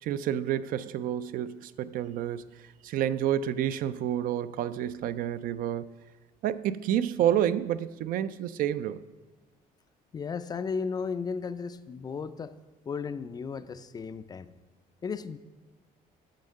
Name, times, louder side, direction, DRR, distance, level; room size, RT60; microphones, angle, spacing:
voice 1, 0.0-5.9 6.4-9.0, right 10 dB, 65° right, 0.4 m, -29 dB
voice 2, 10.1-12.6 12.9-14.5 15.0-15.4, left 5 dB, 25° left, 0.3 m, -34 dB
9.1 x 6.4 x 6.4 m
cardioid pair, 145°, 15 cm